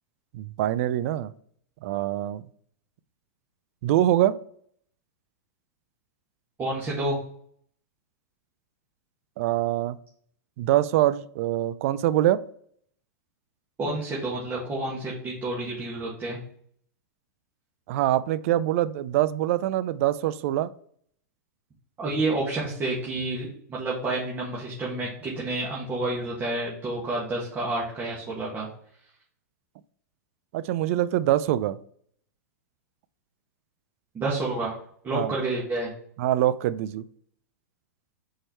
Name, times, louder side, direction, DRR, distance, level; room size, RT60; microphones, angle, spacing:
voice 1, 0.3-1.3 1.8-2.4 3.8-4.3 9.4-10.0 10.6-12.4 17.9-20.7 30.5-31.8 35.1-35.3 36.2-37.0, right 13 dB, 55° right, 16 dB, 0.4 m, -24 dB
voice 2, 6.6-7.2 13.8-16.4 22.0-28.7 34.1-34.8 35.0-35.9, right 2 dB, 25° right, -5 dB, 1.7 m, -29 dB
4.7 x 4.6 x 4.3 m, 0.62 s
hypercardioid pair, 120°, 9 cm